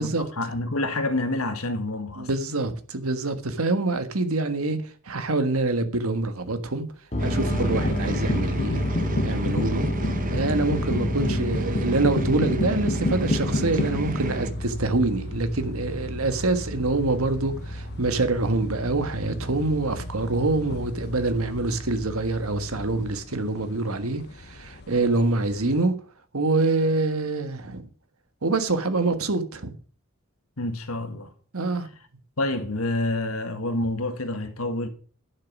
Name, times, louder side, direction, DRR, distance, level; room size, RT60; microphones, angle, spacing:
voice 1, 0.0-2.3 30.6-31.3 32.4-34.9, left 2 dB, 85° left, 1.7 m, -28 dB
voice 2, 2.2-4.8 5.0-6.8 7.2-8.8 9.2-9.9 10.3-25.9 26.3-27.9 28.4-29.8 31.5-31.9, right 2 dB, 80° right, 1.5 m, -25 dB
sound 1, 7.1-23.2, equal, 30° left, 2.4 m, -32 dB
sound 2, 7.2-14.5, right 2 dB, 40° right, 1.1 m, -33 dB
sound 3, 7.5-25.8, left 2 dB, 50° left, 0.8 m, -32 dB
11.5 x 6.8 x 6.0 m
head